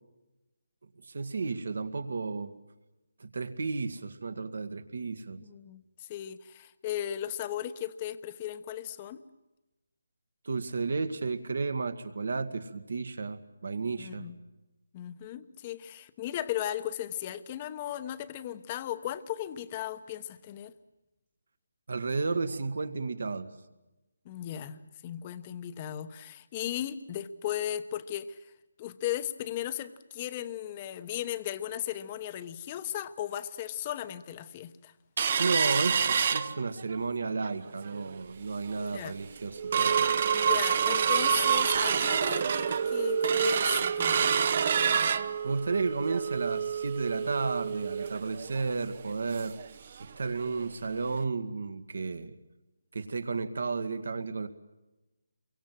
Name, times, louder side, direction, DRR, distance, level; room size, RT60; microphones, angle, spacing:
voice 1, 1.1-2.5 3.2-5.4 10.5-14.3 21.9-23.5 35.4-40.1 45.4-49.6 50.0-52.4 52.9-54.5, right 4 dB, 65° right, 9 dB, 2.0 m, -32 dB
voice 2, 5.4-9.2 14.0-14.4 14.9-20.7 24.2-28.4 28.8-34.9 38.7-39.1 40.3-44.4, left 11 dB, 25° left, 12 dB, 1.1 m, -36 dB
sound 1, 35.2-37.0 37.4-37.5 37.9-38.2 38.7-38.8 39.2-49.7 50.0-50.1 50.5-50.7 51.2-51.3, right 7 dB, 40° right, 0.9 m, -27 dB
28.0 x 23.5 x 7.7 m, 1.0 s
figure-of-eight pair, 160°, 0 cm